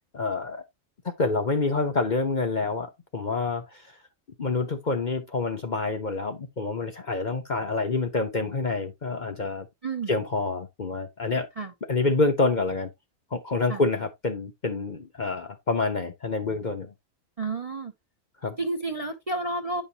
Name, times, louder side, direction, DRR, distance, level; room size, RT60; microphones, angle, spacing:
voice 1, 0.1-0.6 1.0-3.8 4.4-9.7 10.1-11.5 11.9-12.9 13.3-16.9 18.4-18.6, left 3 dB, 40° left, 0.9 m, -27 dB
voice 2, 17.4-17.9 18.6-19.8, right 2 dB, 35° right, 0.7 m, -30 dB
9.1 x 5.4 x 2.8 m
omnidirectional pair, 1.4 m